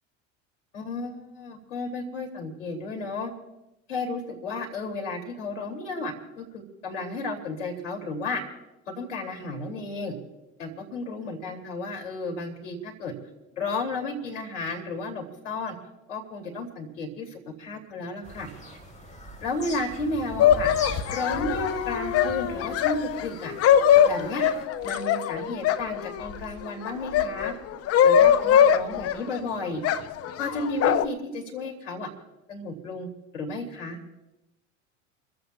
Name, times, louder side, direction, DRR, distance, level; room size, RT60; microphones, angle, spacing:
voice 1, 0.7-3.3 3.9-8.4 9.0-10.1 10.6-13.1 13.6-15.7 16.1-18.5 19.4-20.7 21.1-23.5 24.0-24.4 24.8-27.5 28.0-29.8 30.4-32.1 32.5-33.1 33.3-34.0, left 2 dB, 80° left, 2 dB, 2.8 m, -33 dB
Bird vocalization bird call bird song, 18.2-24.7, equal, 20° left, 4.0 m, -41 dB
sound 1, 20.4-26.4 26.8-29.4 29.8-31.0, left 9 dB, 40° left, 0.8 m, -21 dB
29.0 x 15.5 x 2.4 m, 0.94 s
hypercardioid pair, 70°, 36 cm